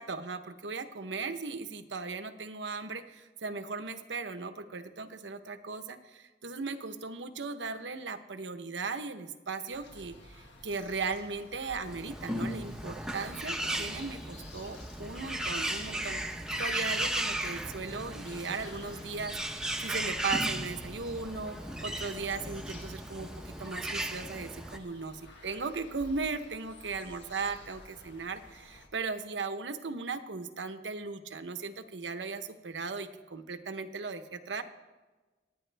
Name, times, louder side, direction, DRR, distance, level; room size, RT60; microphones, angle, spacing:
voice 1, 0.0-3.0 3.4-6.0 6.4-10.1 10.6-14.2 14.5-16.2 16.6-19.3 19.8-21.6 21.8-23.3 23.6-25.2 25.4-27.8 28.1-28.4 28.9-34.2 34.5-34.6, right 4 dB, 85° right, 9 dB, 0.9 m, -37 dB
sound 1, 9.7-28.9, left 2 dB, 85° left, 1.6 m, -53 dB
Bird, 11.8-24.8, right 1 dB, 5° right, 0.7 m, -36 dB
25.5 x 9.6 x 3.4 m, 1.2 s
head